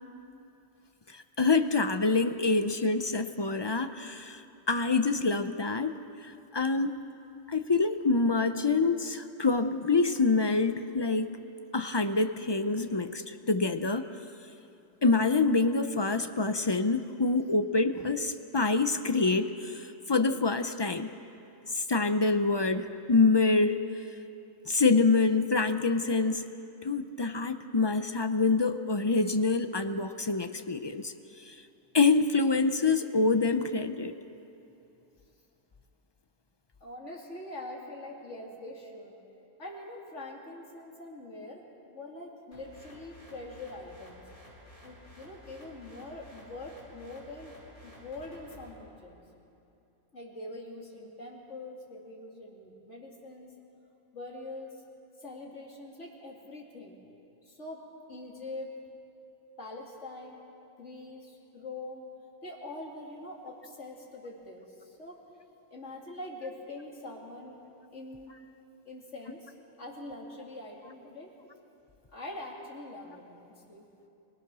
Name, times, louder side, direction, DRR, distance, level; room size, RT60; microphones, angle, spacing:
voice 1, 1.1-4.4 4.7-6.0 6.2-6.9 7.5-11.3 11.7-14.1 15.0-19.8 20.1-21.1 21.9-23.8 24.7-26.5 26.8-31.1 31.5-31.6 31.9-34.1, left 3 dB, 35° left, 9 dB, 0.4 m, -26 dB
voice 2, 36.8-39.1 39.6-44.2 44.8-47.6 47.8-49.2 50.1-53.5 54.1-54.7 55.2-57.0 57.4-58.7 59.6-60.4 60.8-62.0 62.4-65.2 65.7-67.6 67.9-68.3 68.8-71.3 72.1-73.9, left 2 dB, 60° left, -1 dB, 3.1 m, -44 dB
sound 1, 42.5-48.7, equal, 10° left, 6.1 m, -53 dB
24.5 x 19.5 x 6.1 m, 2.8 s
omnidirectional pair, 1.4 m